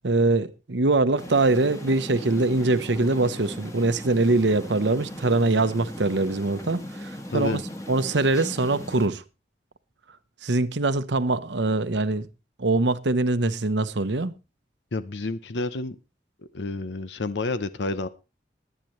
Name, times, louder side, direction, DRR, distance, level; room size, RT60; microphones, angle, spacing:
voice 1, 0.0-7.6 7.9-9.2 10.4-12.3 12.6-14.3, right 2 dB, 85° right, 0.9 m, -23 dB
sound 1, 1.2-9.1, left 1 dB, 20° left, 1.6 m, -38 dB
voice 2, 14.9-16.0 16.5-18.1, left 3 dB, 85° left, 0.8 m, -29 dB
21.0 x 9.1 x 3.2 m
head